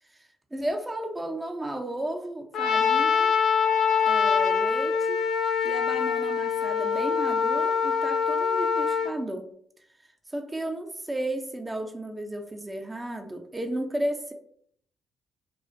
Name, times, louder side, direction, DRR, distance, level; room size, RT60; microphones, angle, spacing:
voice 1, 0.2-3.3 4.0-5.2 5.6-9.5 10.3-14.3, right 1 dB, 15° right, 3 dB, 0.3 m, -33 dB
Trumpet, 2.5-9.1, left 6 dB, 65° left, 0.4 m, -24 dB
2.4 x 2.1 x 2.4 m, 0.65 s
cardioid pair, 90°, 0 cm